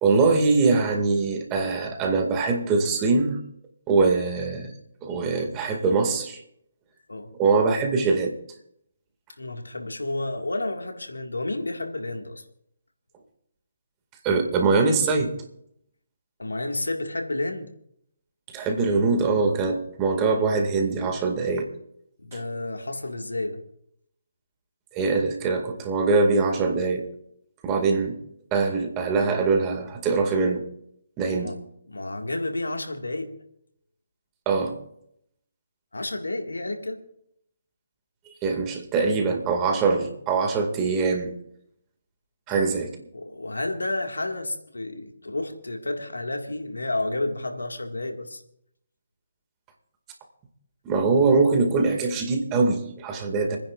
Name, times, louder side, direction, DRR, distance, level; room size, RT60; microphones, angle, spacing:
voice 1, 0.0-3.4 3.9-4.7 5.0-6.4 7.4-8.3 14.2-15.4 18.5-21.7 22.3-22.4 24.9-27.1 27.6-28.2 28.5-30.6 31.2-31.6 34.5-34.8 38.4-41.3 42.5-43.0 50.8-53.6, right 4 dB, 20° right, 3 dB, 2.2 m, -23 dB
voice 2, 9.4-12.4 16.4-17.7 22.2-23.6 31.3-31.6 31.9-33.3 35.9-37.0 42.5-42.7 43.1-48.4, left 2 dB, 90° left, 4 dB, 2.0 m, -31 dB
30.0 x 10.0 x 2.5 m, 0.72 s
figure-of-eight pair, 145°, 0 cm